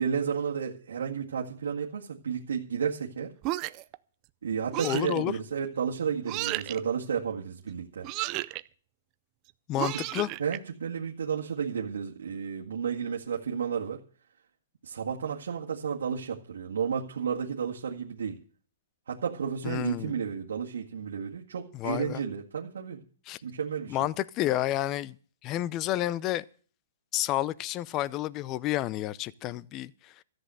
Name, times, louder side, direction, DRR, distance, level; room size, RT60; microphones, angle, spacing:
voice 1, 0.0-3.3 4.4-8.1 9.9-10.0 10.4-14.0 14.8-18.4 19.1-23.0 23.4-24.0, right 7 dB, 80° right, 1.9 m, -32 dB
sound 1, 3.4-4.0 4.7-5.2 6.3-6.8 8.0-8.6 9.8-10.6, right 19 dB, 30° right, 0.5 m, -32 dB
voice 2, 4.8-5.3 9.7-10.3 19.6-20.2 21.7-22.2 23.3-23.4 23.9-25.2 25.4-26.5 27.1-30.2, left 14 dB, 25° left, 0.5 m, -30 dB
14.0 x 7.9 x 7.7 m
hypercardioid pair, 155°, 0 cm